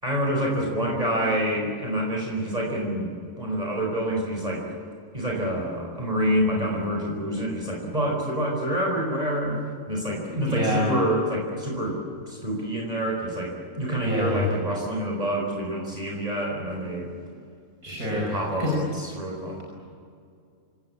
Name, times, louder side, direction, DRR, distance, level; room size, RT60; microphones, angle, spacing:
voice 1, 0.0-3.1 3.4-4.7 5.1-12.0 12.3-17.1 17.9-19.6, equal, 25° right, -2 dB, 4.9 m, -27 dB
voice 2, 10.3-10.9 14.0-14.4 17.8-18.2 18.6-18.7, left 1 dB, 75° right, -3 dB, 6.1 m, -26 dB
27.0 x 18.0 x 8.7 m, 2.3 s
omnidirectional pair, 1.5 m